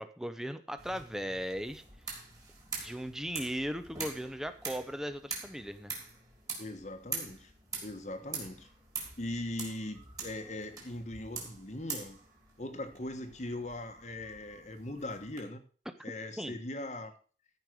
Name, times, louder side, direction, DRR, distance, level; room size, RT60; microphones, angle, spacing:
voice 1, 0.0-1.8 2.7-5.9 16.4-16.5, equal, 5° right, 10 dB, 0.8 m, -37 dB
sound 1, 0.8-15.4, right 4 dB, 20° right, 3.1 m, -44 dB
voice 2, 6.6-7.5 7.8-8.7 9.2-12.2 12.6-15.6 16.0-17.1, left 1 dB, 40° left, 6 dB, 1.3 m, -40 dB
14.0 x 5.4 x 6.2 m, 0.39 s
head